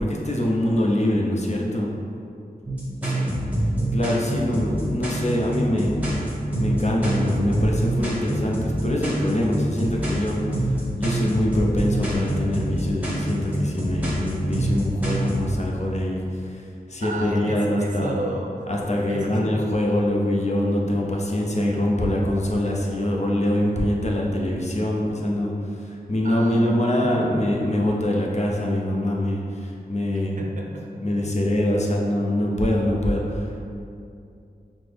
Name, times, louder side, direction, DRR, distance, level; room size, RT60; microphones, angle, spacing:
voice 1, 0.0-1.9 3.9-6.3 6.6-16.6 16.9-18.2 18.7-30.4 31.0-33.6, left 1 dB, 45° left, -2 dB, 0.6 m, -24 dB
sound 1, 2.7-15.5, right 1 dB, 10° right, 1.0 m, -26 dB
voice 2, 3.0-3.3 17.0-18.7 19.1-19.4 26.2-26.7 27.0-27.5 30.1-31.1, right 2 dB, 55° right, 0 dB, 0.5 m, -33 dB
5.7 x 2.0 x 3.3 m, 2.5 s
wide cardioid pair, 65°, 16 cm